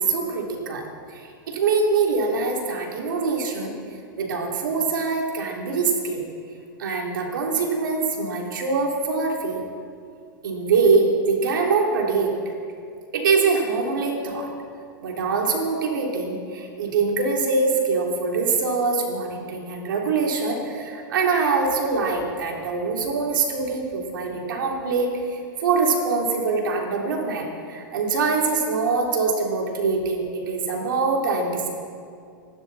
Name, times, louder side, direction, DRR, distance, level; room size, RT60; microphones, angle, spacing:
voice 1, 0.0-3.7 4.2-6.2 6.8-9.6 10.4-12.3 13.1-14.5 15.0-31.7, right 4 dB, 70° right, 0 dB, 3.6 m, -24 dB
25.0 x 12.5 x 4.3 m, 2.3 s
hypercardioid pair, 110°, 11 cm